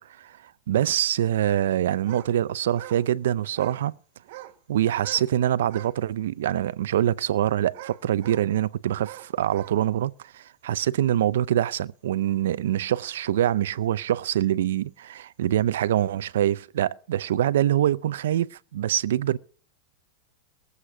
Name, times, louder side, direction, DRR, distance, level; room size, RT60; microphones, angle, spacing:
voice 1, 0.7-4.0 4.7-19.4, right 11 dB, 85° right, 0.6 m, -24 dB
sound 1, 2.0-2.3 2.6-3.0 3.5-3.9 4.2-4.6 4.9-5.3 5.6-6.0 6.5-6.6 7.7-8.5 9.0-9.8, right 14 dB, 65° right, 1.8 m, -43 dB
21.0 x 8.2 x 4.9 m
supercardioid pair, 140°, 0 cm